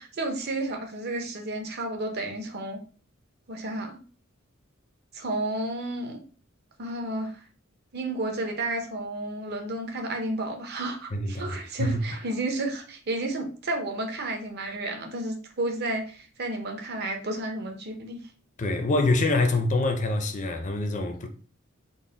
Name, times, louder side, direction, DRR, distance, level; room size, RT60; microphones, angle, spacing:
voice 1, 0.0-2.8 3.5-4.0 5.1-6.2 6.8-7.4 7.9-18.2, right 2 dB, 50° right, 0.7 m, -32 dB
voice 2, 11.1-12.0 18.6-21.3, left 2 dB, 35° left, 0.5 m, -25 dB
3.9 x 2.1 x 3.8 m
head